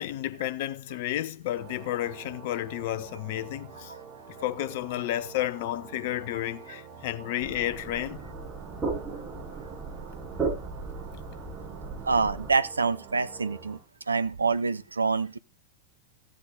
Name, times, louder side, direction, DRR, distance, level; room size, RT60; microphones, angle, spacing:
voice 1, 0.0-3.9 4.4-8.2, left 14 dB, 50° left, 0.9 m, -31 dB
sound 1, 1.5-13.8, right 7 dB, 45° right, 3.2 m, -47 dB
sound 2, 7.4-12.5, right 4 dB, 15° right, 7.3 m, -36 dB
voice 2, 12.0-13.8 14.1-15.4, right 4 dB, 75° right, 0.7 m, -26 dB
15.5 x 8.1 x 3.9 m
figure-of-eight pair, 90°, 0 cm